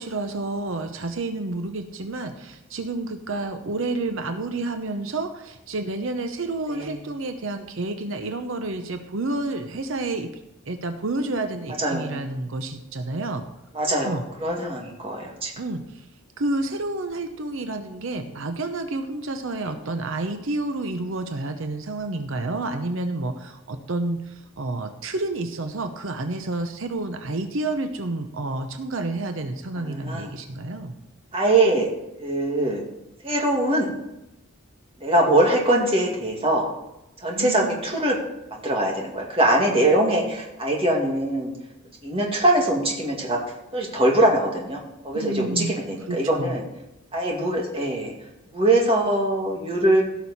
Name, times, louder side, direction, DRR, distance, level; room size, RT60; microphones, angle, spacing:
voice 1, 0.0-10.3 10.7-13.4 14.0-14.2 15.6-15.8 16.4-30.9 37.3-37.8 45.1-45.7 46.1-46.6, right 2 dB, 65° right, 6 dB, 0.8 m, -29 dB
voice 2, 6.7-7.0 11.8-12.3 13.7-15.5 29.8-30.3 31.3-31.9 32.2-32.8 33.2-33.9 35.0-36.7 37.2-38.2 38.5-41.5 42.0-43.4 43.7-44.8 45.0-46.6 47.1-48.1 48.5-50.0, right 1 dB, 25° right, -1 dB, 2.1 m, -22 dB
16.5 x 6.2 x 4.2 m, 0.90 s
head